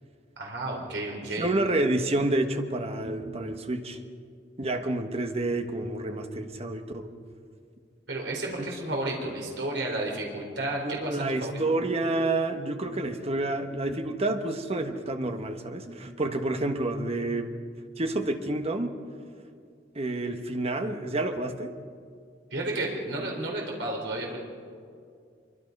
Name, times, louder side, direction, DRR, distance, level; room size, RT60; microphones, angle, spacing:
voice 1, 0.4-1.5 8.1-11.7 22.5-24.4, right 2 dB, 70° right, -1 dB, 4.2 m, -32 dB
voice 2, 1.4-4.0 4.6-7.1 8.6-8.7 10.8-17.6 18.0-18.9 19.9-21.7, right 2 dB, 35° right, 6 dB, 1.4 m, -29 dB
25.5 x 24.0 x 5.4 m, 2.3 s
head